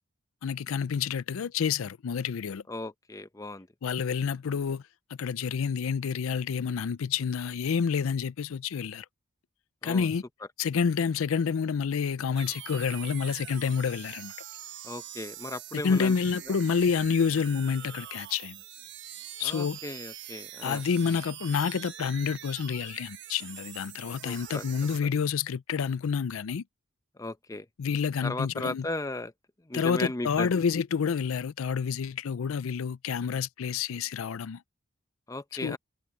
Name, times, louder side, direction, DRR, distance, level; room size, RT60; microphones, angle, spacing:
voice 1, 0.4-2.6 3.8-4.8 5.1-9.1 9.8-10.2 10.6-14.3 15.8-18.6 19.4-19.8 20.6-26.6 27.8-28.9 29.7-34.6 35.6-35.8, left 6 dB, 75° left, 0.4 m, -28 dB
voice 2, 2.7-3.7 9.8-10.1 14.8-16.1 19.4-20.8 24.2-24.6 27.2-27.7 28.2-29.3 29.7-30.5 35.3-35.8, left 2 dB, 15° left, 0.7 m, -36 dB
sound 1, 12.3-25.0, right 11 dB, 60° right, 1.3 m, -44 dB
head